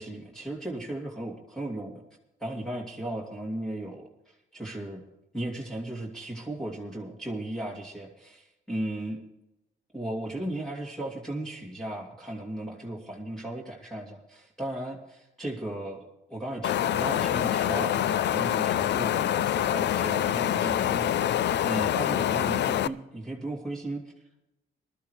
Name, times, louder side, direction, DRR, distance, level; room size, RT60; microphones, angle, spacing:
voice 1, 0.0-2.0 2.4-5.0 5.3-9.2 9.9-24.0, right 1 dB, 5° left, -3 dB, 2.7 m, -36 dB
Wind, 16.6-22.9, left 11 dB, 60° left, 0.5 m, -26 dB
20.0 x 13.0 x 3.3 m, 0.93 s
cardioid pair, 90°, 20 cm